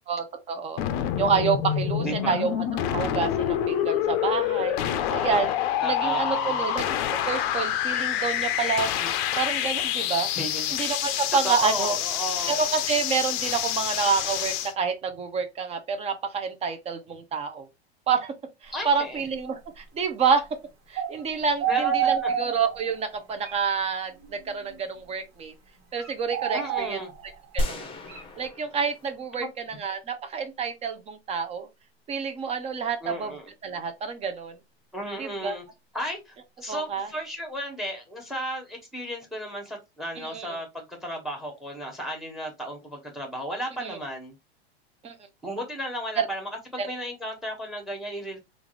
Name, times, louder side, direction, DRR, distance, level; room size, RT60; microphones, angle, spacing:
voice 1, 0.1-0.8 1.2-2.5 2.9-5.5 5.8-7.0 7.3-10.3 10.7-12.0 12.5-17.7 18.1-18.3 18.6-20.5 20.9-25.5 25.9-27.0 27.5-27.9 28.3-31.7 32.1-33.3 33.6-34.5 35.2-35.6 36.7-37.1 40.2-40.5 43.8-44.0 45.0-45.2 46.2-46.3 46.8-46.9, right 6 dB, 20° right, 0.7 m, -28 dB
sound 1, 0.8-14.7, left 11 dB, 45° left, 0.5 m, -27 dB
voice 2, 1.9-2.5 5.8-6.6 10.3-10.7 11.4-12.6 18.7-19.2 21.7-22.3 26.5-27.1 29.4-29.5 33.0-33.5 34.9-35.6 35.9-44.3 45.4-48.4, equal, ahead, 1.3 m, -34 dB
sound 2, 21.0-21.2 21.6-22.9 23.4-23.5 24.2-24.8 26.0-27.3 28.1-28.2, right 8 dB, 55° right, 1.6 m, -28 dB
sound 3, 27.6-29.9, equal, 15° left, 0.8 m, -33 dB
3.6 x 2.6 x 3.1 m
hypercardioid pair, 125°, 33 cm